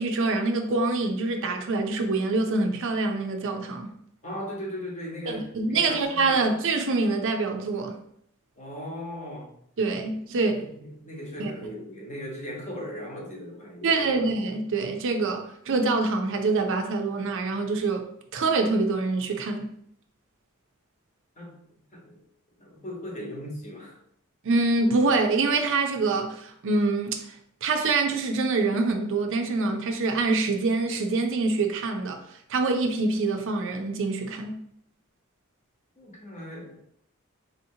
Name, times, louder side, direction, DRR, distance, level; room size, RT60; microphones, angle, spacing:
voice 1, 0.0-3.9 5.3-8.0 9.8-10.6 11.4-11.5 13.8-18.1 18.3-19.8 24.4-27.3 27.6-32.2 32.5-34.6, right 3 dB, 65° right, 0.5 m, -25 dB
voice 2, 4.2-6.4 8.6-9.5 10.4-14.2 21.4-21.6 21.9-22.2 22.6-24.0 36.0-36.7, equal, 35° left, 1.1 m, -38 dB
4.2 x 2.8 x 2.7 m
head